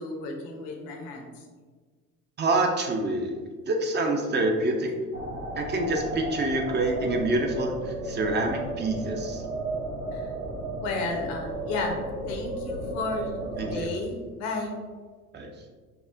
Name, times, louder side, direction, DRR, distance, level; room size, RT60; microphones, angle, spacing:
voice 1, 0.0-1.4 10.1-10.3 10.8-11.9 12.3-14.7, left 3 dB, 60° left, 2 dB, 0.8 m, -33 dB
voice 2, 2.4-3.3 3.7-4.9 5.6-9.4 13.6-13.9 15.3-15.5, right 2 dB, 25° right, 2 dB, 0.4 m, -26 dB
sound 1, 5.1-13.8, right 1 dB, 90° right, 0.8 m, -34 dB
5.6 x 2.0 x 2.5 m, 1.5 s
hypercardioid pair, 70°, 45 cm